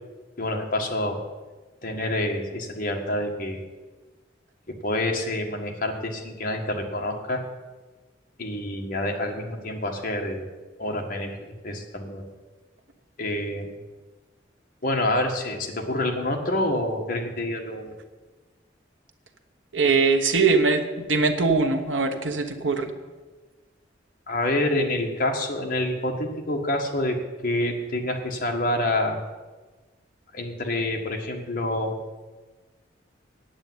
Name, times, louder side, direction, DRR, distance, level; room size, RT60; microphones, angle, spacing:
voice 1, 0.4-1.2 1.8-3.6 4.7-7.4 8.4-10.5 10.8-11.4 11.6-12.3 13.2-13.7 14.8-17.9 24.3-27.2 27.4-29.2 30.3-31.9, left 1 dB, 45° left, 2 dB, 1.6 m, -27 dB
voice 2, 19.7-22.9, right 4 dB, 80° right, 6 dB, 1.2 m, -22 dB
8.8 x 8.3 x 9.4 m, 1.3 s
head